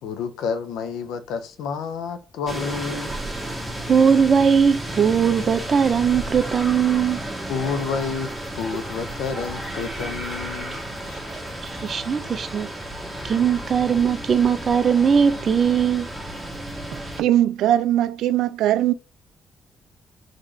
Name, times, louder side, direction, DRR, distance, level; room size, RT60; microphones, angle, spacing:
voice 1, 0.0-3.1 7.5-11.2, left 5 dB, 90° left, 0.7 m, -30 dB
sound 1, 2.5-17.2, right 1 dB, 5° right, 1.7 m, -33 dB
voice 2, 3.9-7.2 11.8-12.7 13.3-16.1, right 7 dB, 45° right, 0.6 m, -19 dB
voice 3, 17.2-18.9, right 12 dB, 85° right, 0.3 m, -20 dB
4.1 x 3.1 x 2.7 m
cardioid pair, 90°, 0 cm